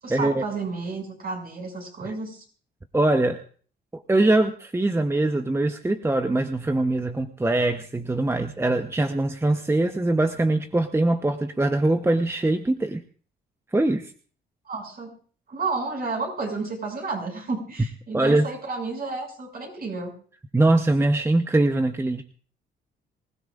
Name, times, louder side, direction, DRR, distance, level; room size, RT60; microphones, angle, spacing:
voice 1, 0.0-2.4 14.6-15.1 15.5-20.1, right 3 dB, 50° right, 2 dB, 6.5 m, -31 dB
voice 2, 2.9-3.4 3.9-13.0 13.7-14.1 18.1-18.5 20.5-22.2, right 2 dB, 10° right, 7 dB, 0.9 m, -22 dB
25.0 x 16.0 x 2.5 m, 0.43 s
cardioid pair, 90°, 20 cm